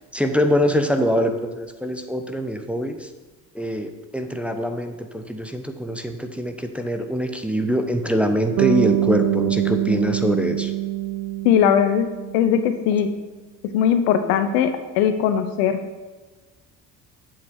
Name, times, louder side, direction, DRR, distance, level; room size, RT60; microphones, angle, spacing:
voice 1, 0.1-3.1 3.5-10.7, equal, ahead, 6 dB, 0.9 m, -24 dB
Bass guitar, 8.6-12.8, right 15 dB, 45° right, 0.5 m, -24 dB
voice 2, 11.4-13.1 13.6-15.8, left 8 dB, 65° left, 9 dB, 1.0 m, -20 dB
8.4 x 7.6 x 4.7 m, 1.2 s
hypercardioid pair, 60°, 50 cm